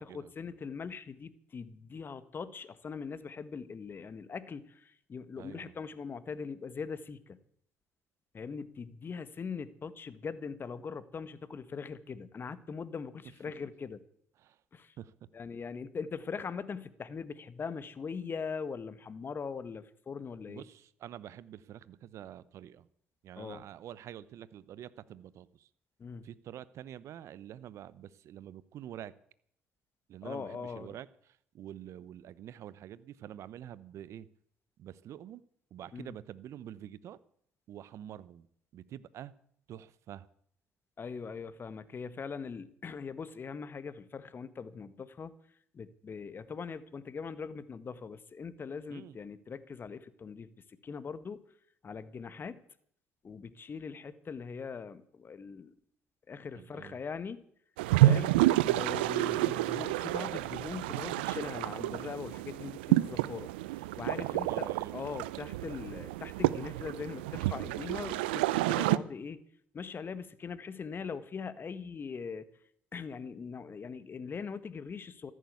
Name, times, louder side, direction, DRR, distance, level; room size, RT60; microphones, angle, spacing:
voice 1, 0.0-7.4 8.3-14.0 14.7-14.9 15.3-20.6 23.4-23.6 26.0-26.3 30.2-31.0 35.9-36.1 41.0-45.3 45.7-50.5 50.8-51.4 51.8-52.6 53.2-55.7 56.3-57.4 58.0-58.3 58.6-69.4 69.7-72.5 72.9-75.3, left 5 dB, 40° left, 14 dB, 1.6 m, -41 dB
voice 2, 5.4-5.7 14.4-14.6 15.0-15.1 20.5-22.9 23.2-25.7 26.2-29.1 30.1-31.1 31.5-34.3 34.8-35.4 35.7-37.2 37.7-38.5 38.7-39.3 39.7-40.3 48.9-49.2 56.5-57.0 57.9-58.4 64.1-65.2, right 11 dB, 60° right, 18 dB, 0.9 m, -47 dB
sound 1, 57.8-69.0, right 16 dB, 85° right, 0.6 m, -29 dB
14.0 x 11.0 x 8.3 m, 0.64 s
hypercardioid pair, 55°, 5 cm